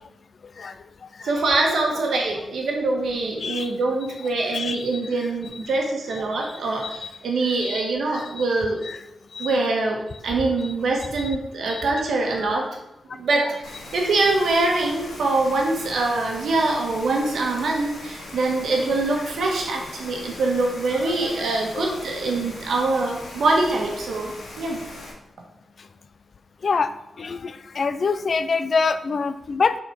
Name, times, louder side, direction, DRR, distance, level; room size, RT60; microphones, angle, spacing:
voice 1, 0.6-1.3 3.4-3.7 4.5-5.0 6.1-6.2 6.8-7.1 7.6-7.8 8.1-8.4 8.8-9.0 9.3-9.5 10.6-10.7 11.2-11.3 11.7-11.8 12.4-12.5 21.1-21.5 21.7-22.0 26.6-29.8, left 4 dB, 45° left, 12 dB, 0.3 m, -27 dB
voice 2, 1.2-8.8 9.4-12.8 13.1-13.5 13.9-24.8, right 2 dB, 70° right, 1 dB, 1.3 m, -24 dB
Rain, 13.6-25.1, left 2 dB, 80° left, 1.8 m, -40 dB
7.0 x 4.3 x 4.6 m, 0.89 s
wide cardioid pair, 170°, 0 cm